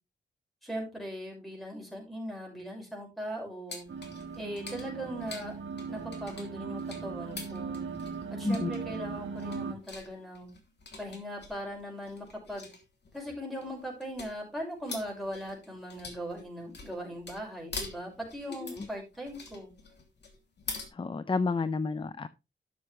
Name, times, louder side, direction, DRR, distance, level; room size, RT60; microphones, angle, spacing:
voice 1, 0.6-3.9 4.4-5.6 5.9-7.8 8.3-10.5 11.0-12.7 13.1-19.7, equal, ahead, 0 dB, 5.9 m, -39 dB
sound 1, 3.7-20.9, left 3 dB, 60° left, 2.9 m, -45 dB
sound 2, 3.9-9.7, right 5 dB, 85° right, 1.6 m, -38 dB
voice 2, 20.9-22.3, left 4 dB, 25° left, 13 dB, 0.6 m, -30 dB
12.5 x 7.2 x 3.3 m, 0.25 s
wide cardioid pair, 120°, 20 cm